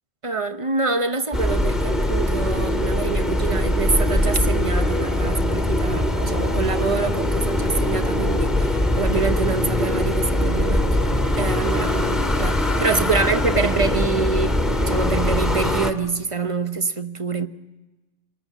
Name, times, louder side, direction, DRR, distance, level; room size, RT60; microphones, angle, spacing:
voice 1, 0.2-17.5, right 4 dB, 30° right, 1.0 m, -26 dB
sound 1, 1.3-15.9, left 1 dB, ahead, 2.0 m, -22 dB
28.0 x 20.0 x 8.1 m
omnidirectional pair, 1.2 m